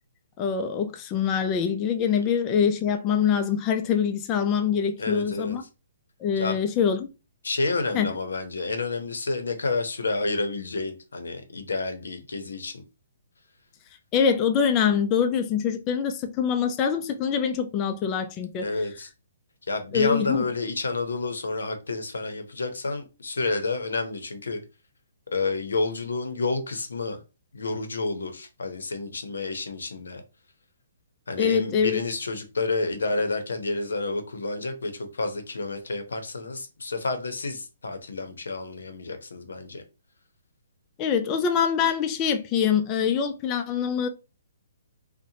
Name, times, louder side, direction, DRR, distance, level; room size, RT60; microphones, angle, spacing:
voice 1, 0.4-5.6 6.2-7.1 7.9-8.1 14.1-18.7 19.9-20.4 31.4-32.0 41.0-44.1, left 7 dB, 25° left, 0.3 m, -24 dB
voice 2, 5.0-5.6 6.4-6.6 7.4-12.8 18.6-19.1 19.7-24.6 25.3-27.2 27.5-30.2 31.3-39.8, left 3 dB, 85° left, 0.6 m, -29 dB
2.8 x 2.1 x 2.7 m
hypercardioid pair, 145°, 0 cm